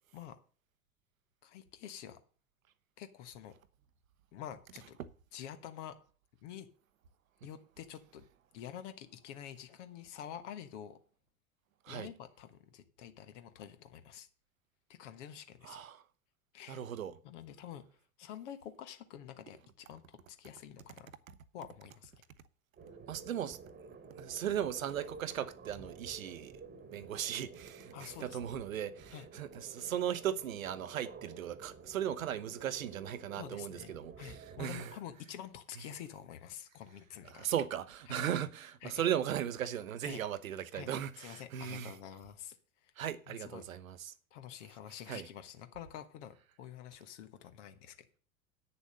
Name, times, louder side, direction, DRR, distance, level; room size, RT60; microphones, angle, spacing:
voice 1, 1.4-2.2 3.0-3.5 4.3-5.0 5.3-6.0 6.4-6.7 7.4-8.2 8.5-11.0 11.9-14.3 14.9-15.8 16.5-16.8 17.2-17.8 18.2-21.1 21.5-22.1 27.9-28.4 29.1-29.3 33.4-33.9 34.2-37.5 38.1-38.2 38.8-39.1 40.0-40.2 40.7-40.9 41.2-42.6 42.8-42.9 43.3-43.6 44.3-48.1, left 10 dB, 55° left, 1.4 m, -48 dB
voice 2, 15.6-16.0 16.7-17.2 21.3-21.4 23.1-23.6 23.9-26.6 26.9-34.9 37.2-42.0 43.0-44.1 45.1-45.3, right 10 dB, 70° right, 0.9 m, -37 dB
sound 1, 22.8-35.0, right 5 dB, 20° right, 1.4 m, -52 dB
9.0 x 6.8 x 6.4 m
figure-of-eight pair, 75°, 42 cm